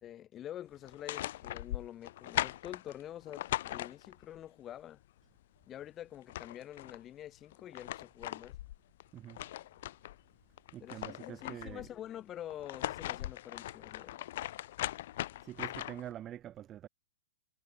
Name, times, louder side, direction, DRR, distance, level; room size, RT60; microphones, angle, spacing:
voice 1, 0.0-5.0 5.7-8.6 10.8-14.2, left 11 dB, 25° left, 4.1 m, -47 dB
sound 1, 0.8-4.4 5.8-5.9 6.1-7.0 7.5-10.2 10.6-11.9 12.5-16.1, left 14 dB, 60° left, 1.5 m, -39 dB
voice 2, 10.7-11.9 15.4-16.9, right 11 dB, 25° right, 6.1 m, -45 dB
hypercardioid pair, 125°, 0 cm